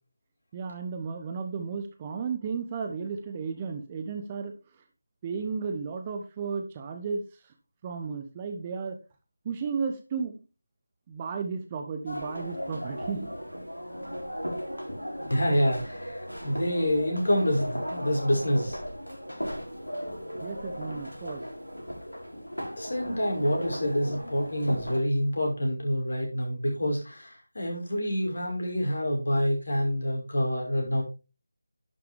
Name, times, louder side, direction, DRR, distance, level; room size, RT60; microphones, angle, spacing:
voice 1, 0.5-4.5 5.2-7.5 7.8-9.0 9.4-10.4 11.1-13.3 20.4-21.4, right 5 dB, 20° right, 6 dB, 1.0 m, -34 dB
sound 1, 12.1-25.0, equal, 85° left, 4.3 m, -37 dB
voice 2, 15.3-18.8 22.8-31.0, equal, 55° left, 0 dB, 5.5 m, -27 dB
11.0 x 8.2 x 3.5 m, 0.30 s
figure-of-eight pair, 160°, 0 cm